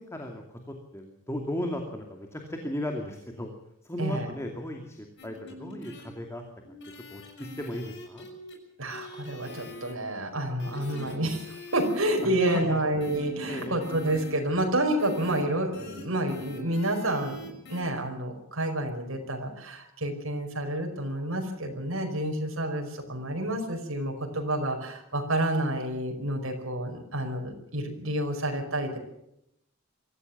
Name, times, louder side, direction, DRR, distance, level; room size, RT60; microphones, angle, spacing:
voice 1, 0.1-3.5 3.8-6.4 6.9-8.3 10.7-10.9 12.2-13.2 13.5-13.8, left 1 dB, 15° left, 3 dB, 2.5 m, -36 dB
sound 1, 5.2-6.0 6.6-8.5 8.9-9.9 10.6-12.3 13.0-14.3 15.0-15.4 15.7-16.0 16.3-17.8, left 2 dB, 60° left, 6.4 m, -44 dB
voice 2, 8.8-29.0, right 1 dB, 80° right, 2 dB, 5.3 m, -29 dB
24.5 x 15.0 x 7.3 m, 0.82 s
head